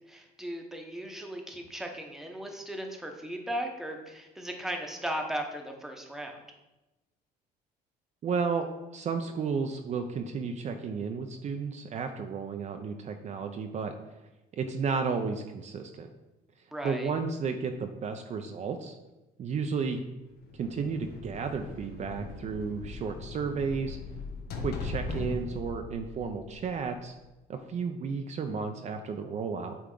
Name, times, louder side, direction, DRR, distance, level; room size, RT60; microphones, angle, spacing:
voice 1, 0.1-6.4 16.7-17.1, right 1 dB, ahead, 2 dB, 0.9 m, -37 dB
voice 2, 8.2-13.9 14.5-16.1 16.8-18.9 19.4-20.0 20.5-24.0 24.6-27.1 27.5-29.8, right 5 dB, 45° right, 6 dB, 0.5 m, -33 dB
sound 1, 20.4-27.1, left 3 dB, 65° left, 1.0 m, -39 dB
8.4 x 3.5 x 3.8 m, 1.0 s
cardioid pair, 110°, 17 cm